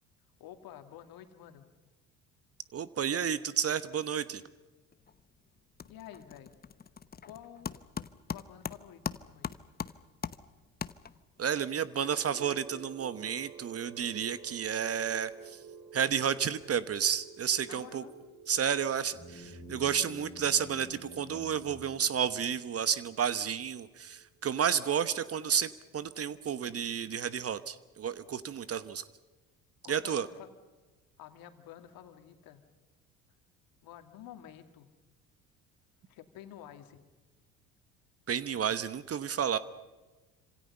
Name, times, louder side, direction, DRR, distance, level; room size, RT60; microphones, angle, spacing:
voice 1, 0.4-1.7 5.9-6.5 7.2-7.7 8.3-9.6 17.6-18.2 29.8-30.5 31.2-32.6 33.8-34.9 36.1-37.0, left 10 dB, 60° left, 7 dB, 2.6 m, -50 dB
voice 2, 2.7-4.4 11.4-15.6 15.9-18.0 18.5-29.0 29.9-30.3 38.3-39.6, right 8 dB, 35° right, 15 dB, 1.2 m, -31 dB
sound 1, 4.9-5.3 5.6-11.4, left 6 dB, 25° left, 0.9 m, -41 dB
sound 2, 11.8-25.7, right 6 dB, 70° right, 5.1 m, -52 dB
sound 3, 19.1-22.8, equal, 5° left, 7.8 m, -50 dB
27.0 x 26.0 x 5.6 m, 1.2 s
hypercardioid pair, 60°, 40 cm